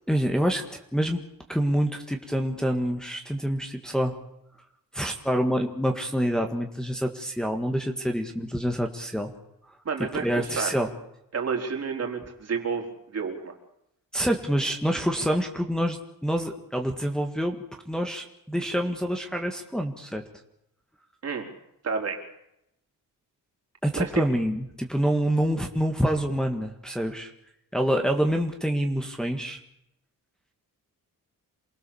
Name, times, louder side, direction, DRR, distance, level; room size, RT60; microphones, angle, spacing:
voice 1, 0.1-1.2 1.5-4.1 4.9-9.3 10.2-10.9 14.1-17.6 17.9-20.2 23.8-27.3 27.7-29.6, equal, ahead, 2 dB, 1.8 m, -26 dB
voice 2, 9.8-10.3 10.6-10.7 11.3-12.9 13.1-13.6 21.2-21.5 21.8-22.2 23.9-24.2, right 5 dB, 45° right, 2 dB, 4.4 m, -29 dB
28.0 x 21.0 x 7.2 m, 0.81 s
wide cardioid pair, 165°, 34 cm